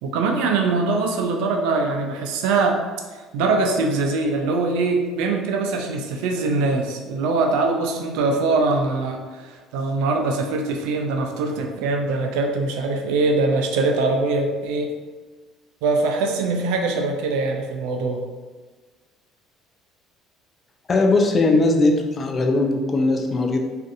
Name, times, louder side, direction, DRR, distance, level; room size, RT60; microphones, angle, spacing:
voice 1, 0.0-2.8 3.3-14.9 15.8-18.2, right 3 dB, 80° right, 3 dB, 0.4 m, -22 dB
voice 2, 20.9-23.6, left 2 dB, 40° left, 3 dB, 0.4 m, -19 dB
2.5 x 2.5 x 2.4 m, 1.4 s
supercardioid pair, 75°, 0 cm